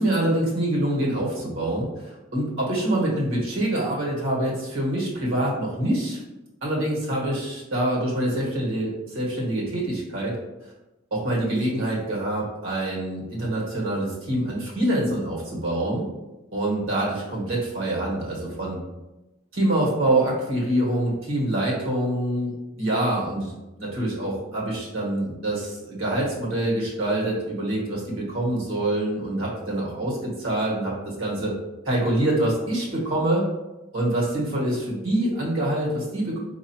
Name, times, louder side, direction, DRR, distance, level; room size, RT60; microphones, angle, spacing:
voice 1, 0.0-6.2 6.6-10.4 11.1-16.0 16.5-18.8 19.5-23.5 23.8-31.5 31.8-33.5 33.9-36.4, right 1 dB, 75° right, -3 dB, 1.3 m, -25 dB
4.6 x 2.6 x 2.8 m, 1.0 s
head